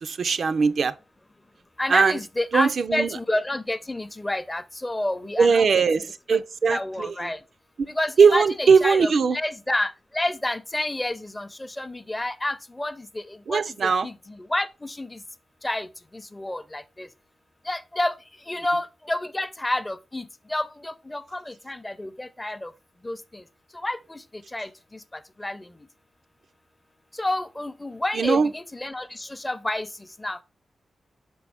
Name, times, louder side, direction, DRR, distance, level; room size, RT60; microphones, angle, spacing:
voice 1, 0.0-0.9 1.9-2.2 2.5-3.2 5.4-7.3 8.2-9.4 13.5-14.1 28.1-28.5, right 5 dB, 70° right, 0.3 m, -20 dB
voice 2, 1.8-5.7 6.7-7.4 7.8-11.5 11.8-13.2 13.5-15.2 15.6-15.9 16.1-17.1 17.7-18.2 18.5-22.7 23.0-23.4 23.8-24.2 24.5-24.7 25.4-25.7 27.2-29.9 30.2-30.4, left 1 dB, 20° left, 0.5 m, -29 dB
6.1 x 4.7 x 3.4 m
cardioid pair, 60°, 0 cm